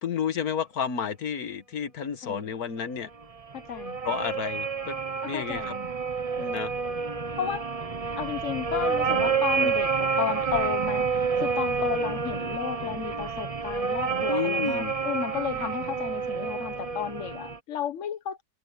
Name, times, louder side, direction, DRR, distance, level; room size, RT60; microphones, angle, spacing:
voice 1, 0.0-3.1 4.0-5.0 5.3-5.7 6.4-6.7 9.6-9.7 14.3-14.9, left 7 dB, 70° left, 1.9 m, -31 dB
sound 1, 3.2-17.6, right 5 dB, 30° right, 0.8 m, -29 dB
voice 2, 3.5-4.0 5.2-5.9 7.4-7.7 8.2-11.1 11.4-18.4, left 9 dB, 55° left, 1.4 m, -33 dB
omnidirectional pair, 1.7 m